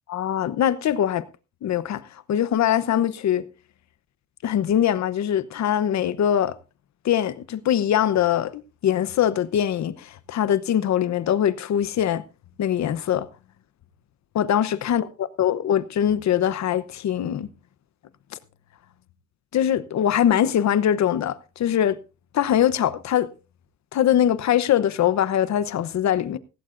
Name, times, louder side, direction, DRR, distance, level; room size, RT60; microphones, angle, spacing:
voice 1, 0.1-1.2 1.6-2.0 2.3-3.5 4.4-6.6 7.0-12.2 12.6-13.3 14.3-17.5 19.5-22.0 22.3-23.3 23.9-26.4, left 10 dB, 65° left, 1.0 m, -22 dB
16.5 x 16.0 x 2.6 m
cardioid pair, 90°, 30 cm